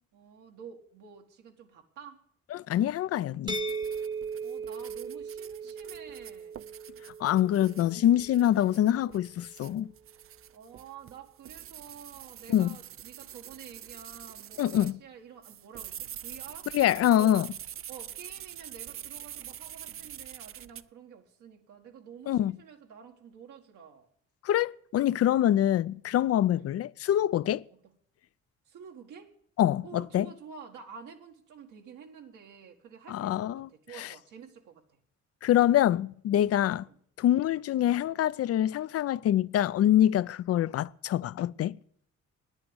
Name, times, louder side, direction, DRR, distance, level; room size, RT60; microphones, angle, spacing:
voice 1, 0.1-2.2 4.4-6.6 10.5-16.7 17.1-17.4 17.9-24.1 26.5-26.7 28.7-29.3 29.8-35.0 36.8-37.0, right 7 dB, 80° right, 1.7 m, -49 dB
voice 2, 2.5-3.6 7.2-9.9 12.5-12.7 14.6-15.0 16.7-17.5 22.3-22.5 24.4-27.6 29.6-30.3 33.1-33.7 34.0-34.1 35.4-36.9 37.2-41.8, left 12 dB, 55° left, 0.5 m, -25 dB
sound 1, 3.5-9.2, right 4 dB, 15° right, 0.9 m, -38 dB
sound 2, 3.5-15.0 15.4-20.8, right 11 dB, 45° right, 0.4 m, -45 dB
10.0 x 9.0 x 9.6 m
cardioid pair, 90°, 30 cm